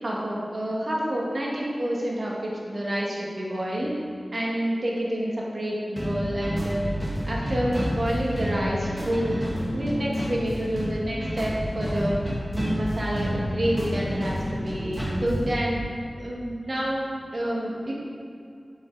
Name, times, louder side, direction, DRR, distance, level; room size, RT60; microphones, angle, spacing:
voice 1, 0.0-3.9 4.3-6.8 7.3-9.4 9.7-12.2 12.5-15.8 16.2-17.9, right 1 dB, 60° right, -4 dB, 2.2 m, -28 dB
sound 1, 6.0-15.5, equal, 35° right, 2.4 m, -29 dB
7.8 x 7.4 x 5.0 m, 2.4 s
cardioid pair, 45°, 0 cm